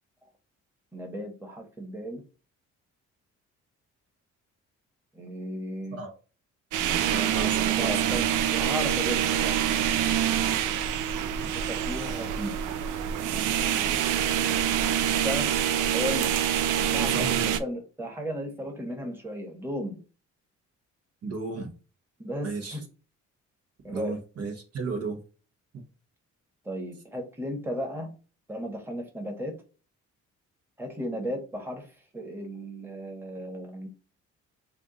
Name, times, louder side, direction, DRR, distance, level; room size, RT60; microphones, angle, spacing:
voice 1, 0.9-2.2 5.1-6.0 7.3-10.2 11.5-12.7 15.2-15.5 15.9-16.3 16.8-20.0 22.2-22.8 23.8-24.2 26.6-28.1 28.5-29.6 30.8-31.9 32.1-33.9, equal, 10° right, 1.3 m, -35 dB
sound 1, 6.7-17.6, right 10 dB, 85° right, 0.5 m, -26 dB
voice 2, 7.1-8.2 11.4-11.5 17.0-17.5 21.2-21.7 22.4-22.8 23.9-25.2 25.7-25.8, right 3 dB, 55° right, 1.1 m, -34 dB
3.4 x 2.5 x 3.8 m
cardioid pair, 90°, 30 cm